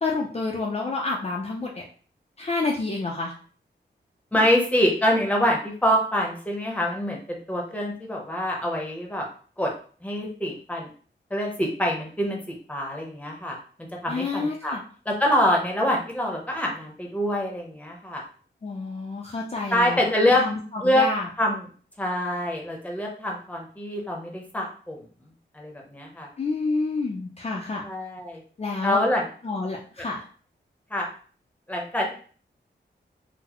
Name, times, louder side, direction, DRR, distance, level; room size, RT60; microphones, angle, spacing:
voice 1, 0.0-1.8 2.4-3.3 14.1-14.8 18.6-20.0 20.3-21.3 26.4-27.8 28.6-29.0 29.4-30.2, left 3 dB, 35° left, -2 dB, 0.5 m, -29 dB
voice 2, 4.3-9.2 9.6-9.7 10.0-10.9 11.3-13.6 14.0-14.8 15.1-18.2 19.7-20.4 20.8-21.1 21.4-21.6 22.0-25.1 25.5-26.3 27.8-28.4 28.8-29.3 30.9-31.1 31.7-32.1, left 1 dB, 5° left, -1 dB, 0.8 m, -25 dB
3.8 x 2.0 x 2.9 m, 0.43 s
wide cardioid pair, 120°, 19 cm